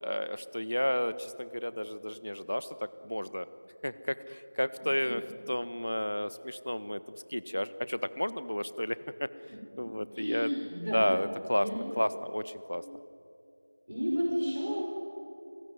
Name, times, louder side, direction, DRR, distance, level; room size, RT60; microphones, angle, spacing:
voice 1, 0.0-2.8 3.0-3.5 3.8-5.2 5.5-9.3 9.8-10.5 10.9-11.7 12.0-12.8, equal, 65° left, 14 dB, 1.3 m, -32 dB
voice 2, 10.1-11.1 11.6-11.8 12.7-12.8 13.9-14.8, equal, 50° right, -3 dB, 5.6 m, -32 dB
29.5 x 17.5 x 9.6 m, 2.7 s
figure-of-eight pair, 175°, 0 cm